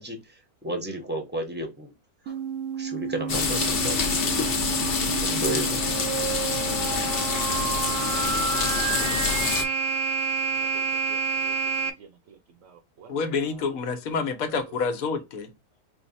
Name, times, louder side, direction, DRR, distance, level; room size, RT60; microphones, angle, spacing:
voice 1, 0.0-1.9 2.3-2.4 2.8-4.1 5.1-5.9, right 1 dB, 10° right, 0.8 m, -33 dB
sound 1, 2.3-11.9, right 6 dB, 80° right, 1.2 m, -29 dB
sound 2, 3.3-9.6, left 5 dB, 50° left, 0.8 m, -26 dB
voice 2, 10.5-13.8 14.2-14.8, right 6 dB, 60° right, 1.1 m, -50 dB
voice 3, 13.1-15.5, left 5 dB, 70° left, 1.2 m, -28 dB
4.8 x 2.1 x 4.0 m
omnidirectional pair, 1.6 m